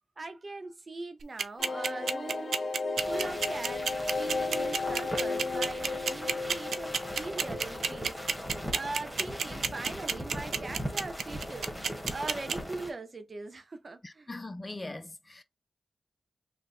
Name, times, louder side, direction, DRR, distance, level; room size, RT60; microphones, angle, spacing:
voice 1, 0.2-2.6 3.1-8.1 8.7-11.7 12.1-14.3, right 3 dB, 50° right, 0.8 m, -41 dB
sound 1, 1.2-12.5, right 6 dB, 85° right, 0.4 m, -29 dB
sound 2, 1.6-9.1 9.3-9.4 9.7-9.8, left 3 dB, 65° left, 0.8 m, -35 dB
sound 3, 3.0-12.9, equal, ahead, 1.5 m, -40 dB
voice 2, 14.0-15.4, left 2 dB, 30° left, 0.6 m, -41 dB
3.3 x 2.3 x 4.3 m
cardioid pair, 50°, 0 cm